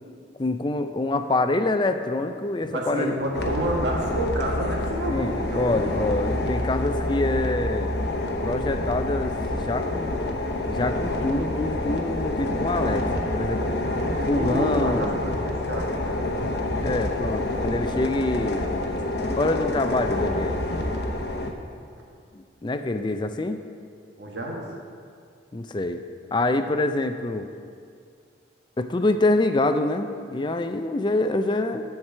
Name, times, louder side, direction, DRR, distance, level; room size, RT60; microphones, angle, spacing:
voice 1, 0.4-3.2 5.1-7.9 8.4-10.3 10.7-13.7 14.2-15.2 16.8-20.6 22.3-23.6 25.5-26.0 26.3-27.5 28.8-31.8, left 2 dB, 25° left, 8 dB, 0.4 m, -26 dB
voice 2, 2.7-6.2 14.0-16.3 24.2-24.7, right 1 dB, 65° right, -1 dB, 1.6 m, -30 dB
sound 1, 3.3-21.5, left 1 dB, 60° left, 0.8 m, -27 dB
10.5 x 4.7 x 6.6 m, 2.3 s
head